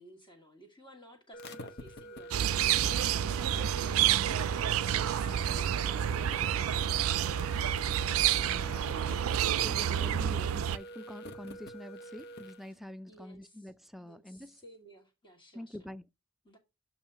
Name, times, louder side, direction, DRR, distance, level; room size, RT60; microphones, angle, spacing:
voice 1, 0.0-2.7 13.1-13.7 14.0-15.8 16.4-16.6, equal, 25° left, 1.5 m, -55 dB
sound 1, 1.3-12.7, right 1 dB, 55° left, 0.8 m, -45 dB
sound 2, 2.3-10.8, right 10 dB, 80° right, 0.4 m, -29 dB
voice 2, 9.6-14.5 15.5-16.0, left 1 dB, ahead, 0.3 m, -45 dB
7.2 x 3.0 x 5.6 m
head